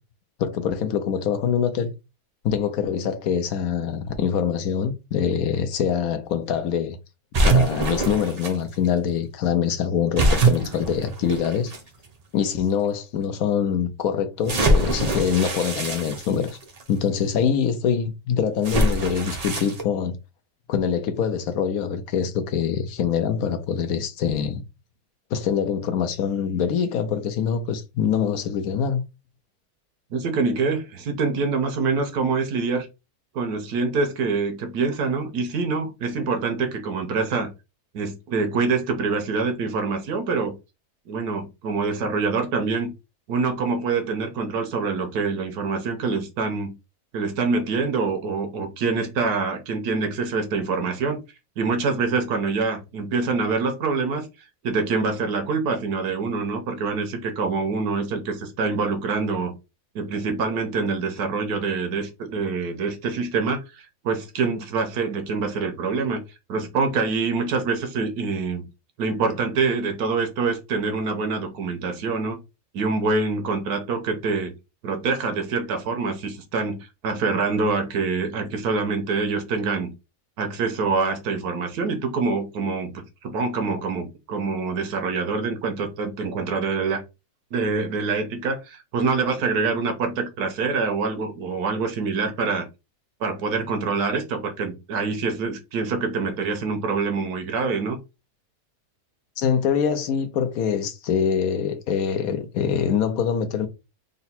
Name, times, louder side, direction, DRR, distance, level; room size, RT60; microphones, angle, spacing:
voice 1, 0.4-1.9 2.4-7.0 7.4-11.7 12.3-16.6 16.9-20.2 20.7-24.6 25.3-29.0 99.4-103.7, left 7 dB, 70° left, 1.1 m, -24 dB
sound 1, 7.3-8.5 10.2-11.8 12.6-12.7 14.5-16.8 18.6-19.8, right 2 dB, 45° right, 0.5 m, -23 dB
voice 2, 30.1-32.9 33.3-37.5 37.9-40.5 41.1-42.9 43.3-46.7 47.1-51.2 51.6-54.3 54.6-59.5 59.9-66.2 66.5-68.7 69.0-72.4 72.7-74.5 74.8-79.9 80.4-87.0 87.5-92.7 93.2-98.0, right 4 dB, 80° right, 1.4 m, -25 dB
4.0 x 2.2 x 4.1 m
omnidirectional pair, 1.7 m